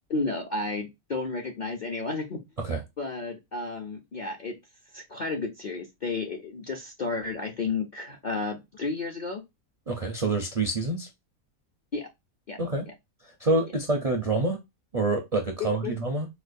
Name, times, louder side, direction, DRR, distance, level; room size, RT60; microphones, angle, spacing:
voice 1, 0.1-2.4 3.0-4.6 4.9-9.4 11.9-12.1 12.5-12.6 12.9-13.0 15.6-15.9, left 3 dB, 50° left, 0.5 m, -32 dB
voice 2, 9.9-11.1 12.6-12.8 13.4-14.6 14.9-16.3, right 2 dB, 45° right, 0.4 m, -27 dB
4.2 x 2.3 x 2.5 m
omnidirectional pair, 1.5 m